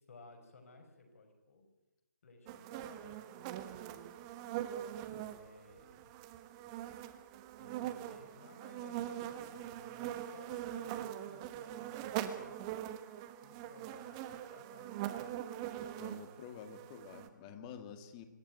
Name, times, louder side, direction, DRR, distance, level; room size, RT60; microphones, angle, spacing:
voice 1, 0.1-1.7 2.2-4.0 5.1-6.1 7.6-12.5 13.4-15.0, left 3 dB, 45° left, 5 dB, 5.3 m, -58 dB
sound 1, 2.5-17.3, right 12 dB, 20° right, 1.4 m, -42 dB
voice 2, 16.0-18.2, left 7 dB, 20° left, 9 dB, 2.0 m, -49 dB
26.0 x 12.0 x 9.3 m, 1.1 s
figure-of-eight pair, 145°, 10 cm